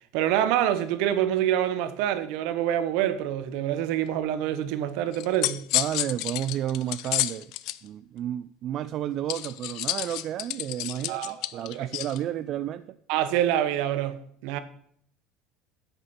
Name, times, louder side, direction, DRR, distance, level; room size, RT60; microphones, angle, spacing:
voice 1, 0.1-5.6 11.1-11.9 13.1-14.6, right 11 dB, 75° right, 1.1 m, -26 dB
sound 1, 5.1-7.8 9.3-12.2, left 17 dB, 70° left, 0.5 m, -30 dB
voice 2, 5.7-7.5 7.8-12.9, right 11 dB, 55° right, 0.5 m, -31 dB
9.9 x 8.2 x 5.8 m
supercardioid pair, 90°, 0 cm